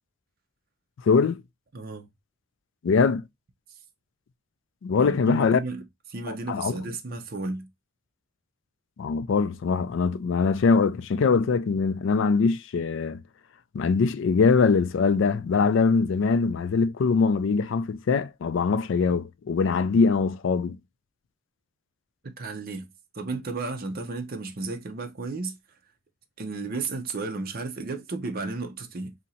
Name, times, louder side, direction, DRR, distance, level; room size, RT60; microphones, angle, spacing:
voice 1, 1.1-1.4 2.8-3.2 4.8-5.6 6.3-6.7 9.0-13.2 13.7-20.8, left 5 dB, 60° left, 0.3 m, -22 dB
voice 2, 1.7-2.1 5.0-7.7 22.2-22.9 23.1-25.5 26.4-29.1, right 3 dB, 45° right, 0.6 m, -33 dB
2.8 x 2.6 x 4.1 m
head